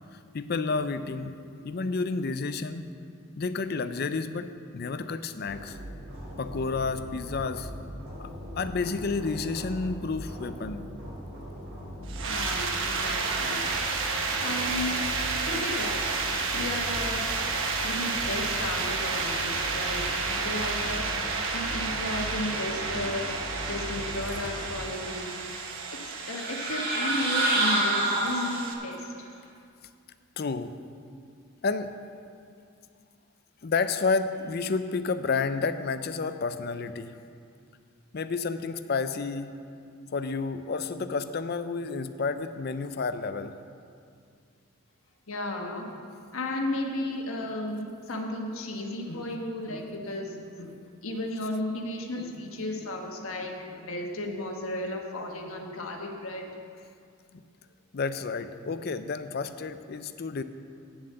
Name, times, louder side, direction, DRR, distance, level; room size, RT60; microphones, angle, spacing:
voice 1, 0.3-2.9 3.4-5.8 6.4-7.7 8.2-8.3 8.6-10.8 30.4-30.7 31.6-31.9 33.6-37.2 38.1-39.5 40.1-43.5 57.3-57.4 57.9-60.4, left 4 dB, 45° left, 11 dB, 0.4 m, -30 dB
sound 1, 5.5-24.7, equal, 85° right, 3.2 m, -40 dB
sound 2, 12.1-28.7, right 4 dB, 65° right, 1.1 m, -31 dB
voice 2, 12.3-13.7 14.4-15.0 15.5-16.1 16.5-17.3 17.8-21.1 21.5-23.3 23.7-25.3 25.9-29.3 45.3-46.0 46.3-50.8 51.0-56.5, left 1 dB, 75° left, 2 dB, 1.3 m, -34 dB
sound 3, 26.2-28.9, right 2 dB, 45° right, 2.4 m, -26 dB
8.8 x 7.3 x 7.7 m, 2.3 s
head